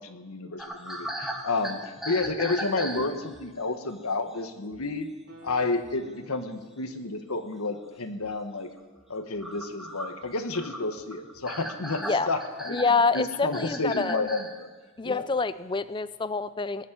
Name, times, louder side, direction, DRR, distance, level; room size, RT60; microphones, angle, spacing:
voice 1, 0.0-5.1 5.4-8.7 9.1-12.8 13.1-14.7 15.0-15.2, left 3 dB, 85° left, 8 dB, 1.5 m, -31 dB
sound 1, 0.6-3.5 4.3-4.4 4.7-4.9 5.5-5.6 5.8-6.4 7.0-7.1 7.4-7.5 8.2-8.4 8.8-14.6, right 1 dB, ahead, 1.4 m, -38 dB
Guitar, 5.2-8.5 8.9-9.0, right 1 dB, 55° right, 4.7 m, -53 dB
voice 2, 12.7-14.3 15.0-16.9, left 4 dB, 20° left, 15 dB, 0.4 m, -26 dB
19.5 x 7.5 x 9.9 m, 1.3 s
head